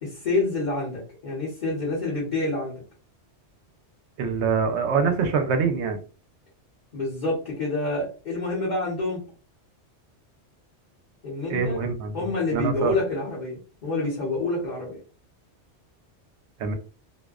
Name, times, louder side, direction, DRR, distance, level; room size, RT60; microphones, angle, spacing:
voice 1, 0.0-2.7 6.9-9.2 11.2-11.8 12.1-15.0, left 2 dB, 45° left, -6 dB, 0.9 m, -27 dB
voice 2, 4.2-6.0 11.5-12.9 16.6-16.7, right 5 dB, 75° right, 6 dB, 0.8 m, -25 dB
2.5 x 2.1 x 2.3 m, 0.36 s
omnidirectional pair, 1.2 m